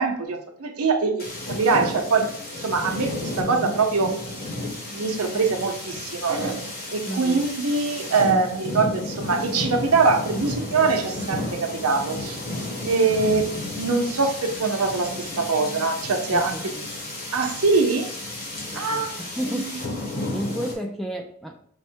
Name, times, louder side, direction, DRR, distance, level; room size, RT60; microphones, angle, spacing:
voice 1, 0.0-4.2 4.9-12.4 12.8-16.7 17.3-18.1 18.7-19.1 19.5-19.7, right 4 dB, 75° right, 3 dB, 0.7 m, -23 dB
sound 1, 1.2-20.7, left 1 dB, 45° left, 1.1 m, -32 dB
voice 2, 7.1-7.5 16.3-16.9 18.7-20.0 20.3-21.7, equal, ahead, 3 dB, 0.3 m, -33 dB
5.4 x 2.1 x 4.5 m, 0.63 s
head